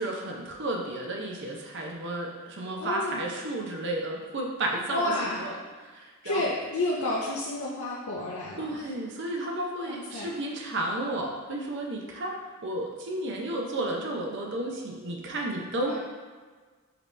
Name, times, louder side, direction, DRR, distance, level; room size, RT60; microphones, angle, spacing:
voice 1, 0.0-5.1 5.4-5.6 5.8-6.4 8.6-12.4 12.6-16.0, right 1 dB, 55° right, 0 dB, 0.6 m, -32 dB
voice 2, 2.8-3.2 4.9-5.7 6.2-8.9 9.9-10.3 15.7-16.0, left 2 dB, 75° left, -5 dB, 0.5 m, -31 dB
5.1 x 2.9 x 3.2 m, 1.5 s
head